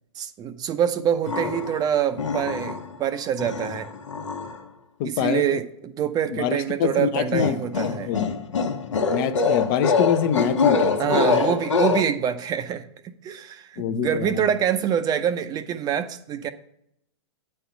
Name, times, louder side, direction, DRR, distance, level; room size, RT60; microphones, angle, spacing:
voice 1, 0.2-3.9 5.0-8.1 11.0-16.5, right 9 dB, 25° right, 0.6 m, -25 dB
sound 1, 1.3-1.8 2.2-3.0 3.4-4.6 7.3-12.0, left 5 dB, 80° left, 1.1 m, -24 dB
voice 2, 5.0-5.6 6.3-8.4 9.1-11.6 13.8-14.5, left 8 dB, 45° left, 0.7 m, -26 dB
9.1 x 4.4 x 6.9 m
hypercardioid pair, 110°, 15 cm